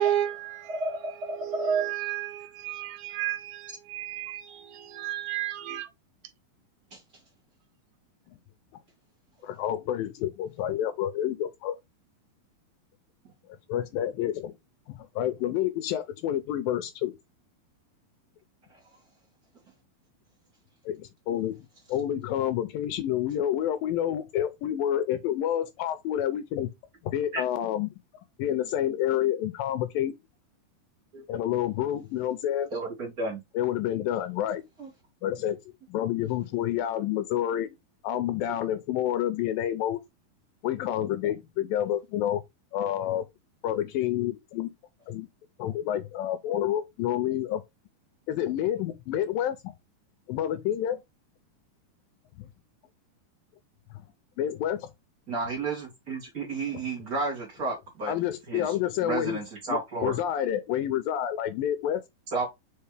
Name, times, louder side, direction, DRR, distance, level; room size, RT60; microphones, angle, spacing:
voice 1, 0.0-0.7 1.4-5.9, right 12 dB, 80° right, 2.5 m, -32 dB
voice 2, 0.7-1.9 6.9-7.0 27.3-27.4 31.1-31.2 32.7-33.4 34.8-34.9 55.3-58.1 58.5-58.7 59.0-60.1 62.3-62.5, right 3 dB, 25° right, 2.5 m, -31 dB
voice 3, 9.4-11.8 13.7-14.5 14.9-17.1 20.9-21.6 21.9-26.7 27.0-27.9 28.4-30.2 31.3-32.7 33.5-34.6 35.2-35.6 35.9-37.8 38.0-40.0 40.6-42.4 42.7-43.3 43.6-44.7 45.1-45.3 45.6-47.6 48.3-49.7 50.3-51.0 52.4-52.5 54.4-54.9 58.1-59.4 59.7-62.0, left 11 dB, 80° left, 2.3 m, -28 dB
5.7 x 5.1 x 3.4 m
omnidirectional pair, 4.3 m